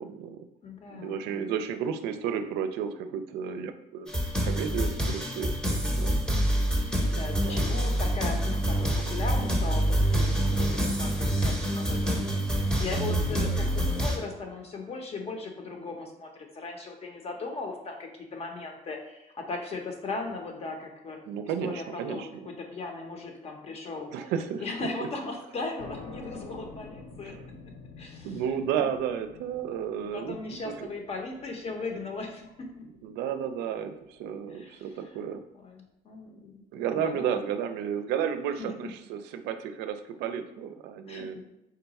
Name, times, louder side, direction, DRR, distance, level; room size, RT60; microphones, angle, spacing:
voice 1, 0.0-0.5 0.9-4.1 4.4-6.2 7.4-7.6 21.3-22.5 24.1-24.6 27.2-27.4 28.2-30.9 33.0-35.4 36.7-41.4, right 8 dB, 85° right, 8 dB, 0.4 m, -32 dB
voice 2, 0.6-1.5 6.9-12.2 12.6-21.2 21.6-24.1 24.6-27.3 28.0-28.4 28.7-28.9 30.0-32.8 34.5-35.2 35.6-36.6 37.0-37.3 38.6-38.9 41.1-41.4, left 3 dB, 35° left, 3 dB, 0.7 m, -38 dB
sound 1, 4.1-14.2, right 1 dB, 5° left, 0.7 m, -26 dB
sound 2, 25.8-33.2, left 3 dB, 70° left, 0.9 m, -47 dB
3.8 x 2.3 x 4.0 m, 0.87 s
cardioid pair, 110°, 17 cm